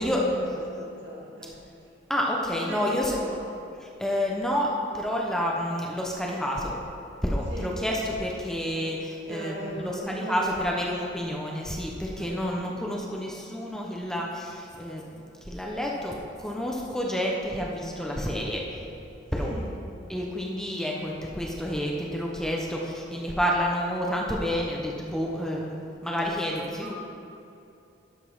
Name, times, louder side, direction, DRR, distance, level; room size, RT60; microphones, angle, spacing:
voice 1, 0.0-1.6 2.4-3.5 7.4-7.8 8.3-8.4 9.3-10.8 12.1-12.8 19.3-19.8 26.6-26.9, right 1 dB, 75° right, -5 dB, 2.5 m, -38 dB
voice 2, 2.1-3.2 4.0-6.7 7.2-18.6 19.3-19.5 20.1-25.8 26.0-26.9, equal, 5° left, -2 dB, 0.8 m, -29 dB
11.0 x 5.4 x 5.5 m, 2.7 s
head